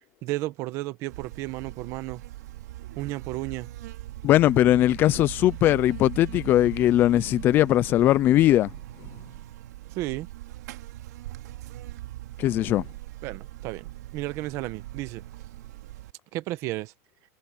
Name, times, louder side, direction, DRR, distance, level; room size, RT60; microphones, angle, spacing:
voice 1, 0.2-2.2 3.0-3.7 9.9-10.3 13.2-15.2 16.3-16.9, right 17 dB, 30° right, 1.1 m, -33 dB
Buzz, 1.1-16.1, right 15 dB, 80° right, 2.4 m, -40 dB
voice 2, 4.2-8.7 12.4-12.9, left 13 dB, 25° left, 0.4 m, -20 dB
supercardioid pair, 175°, 9 cm